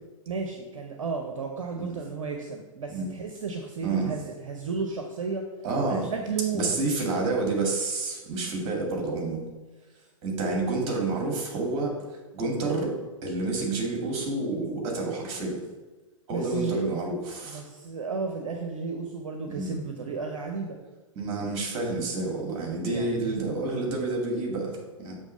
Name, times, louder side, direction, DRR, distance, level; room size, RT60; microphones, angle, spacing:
voice 1, 0.3-5.5 5.9-6.8 16.3-17.0 17.4-20.8 22.9-23.4, right 4 dB, 70° right, 3 dB, 0.7 m, -33 dB
voice 2, 3.8-4.1 5.6-6.1 6.5-9.4 10.2-11.9 12.3-12.9 13.2-15.6 16.3-17.6 19.5-19.7 21.2-25.2, right 3 dB, 35° right, -1 dB, 2.2 m, -29 dB
7.1 x 3.3 x 5.5 m, 1.2 s
figure-of-eight pair, 105°, 17 cm